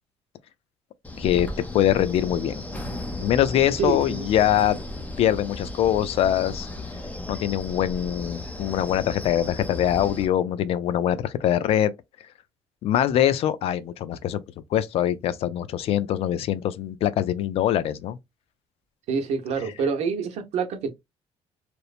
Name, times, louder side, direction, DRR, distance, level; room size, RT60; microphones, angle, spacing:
Wind, 1.0-10.3, left 2 dB, 15° left, 0.6 m, -35 dB
voice 1, 1.2-2.5 3.2-4.8 5.2-6.7 7.3-11.9 12.8-14.4 14.7-18.2, left 11 dB, 60° left, 0.3 m, -23 dB
voice 2, 3.8-4.3 19.1-20.9, right 5 dB, 70° right, 0.7 m, -27 dB
2.9 x 2.0 x 2.4 m
cardioid pair, 120°, 11 cm